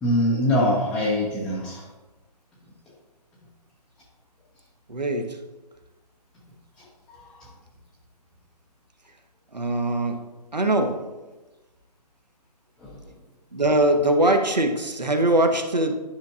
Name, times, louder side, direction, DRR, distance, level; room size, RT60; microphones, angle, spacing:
voice 1, 0.0-1.8 6.8-7.5 12.8-13.0, left 1 dB, 5° left, -8 dB, 0.4 m, -24 dB
voice 2, 4.9-5.4 9.5-10.2 10.5-11.0 13.5-15.9, right 1 dB, 85° right, 5 dB, 1.0 m, -22 dB
10.5 x 5.8 x 2.4 m, 1.1 s
figure-of-eight pair, 135°, 21 cm